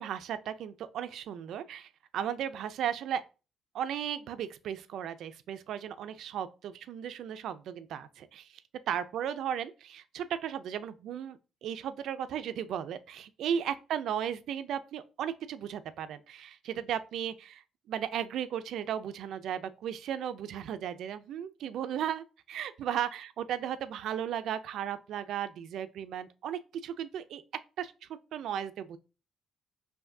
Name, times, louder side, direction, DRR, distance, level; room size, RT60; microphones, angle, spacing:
voice 1, 0.0-3.2 3.7-8.5 8.9-27.4 27.8-27.9 28.3-29.0, right 9 dB, 75° right, 0.4 m, -35 dB
5.7 x 2.6 x 2.6 m
cardioid pair, 90°, 0 cm